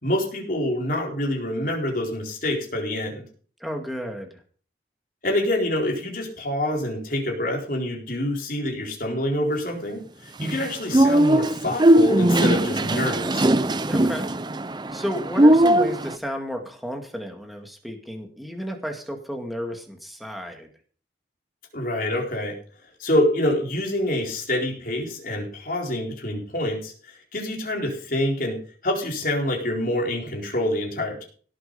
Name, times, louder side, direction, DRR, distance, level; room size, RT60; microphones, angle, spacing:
voice 1, 0.0-3.2 5.2-13.5 21.7-22.6 23.0-28.6 28.8-31.2, left 1 dB, 50° left, 0 dB, 4.3 m, -26 dB
voice 2, 3.6-4.4 13.9-14.3 14.9-20.7, equal, ahead, 3 dB, 2.1 m, -32 dB
sound 1, 10.4-16.1, right 1 dB, 25° right, 0.6 m, -19 dB
17.5 x 7.9 x 5.4 m, 0.43 s
head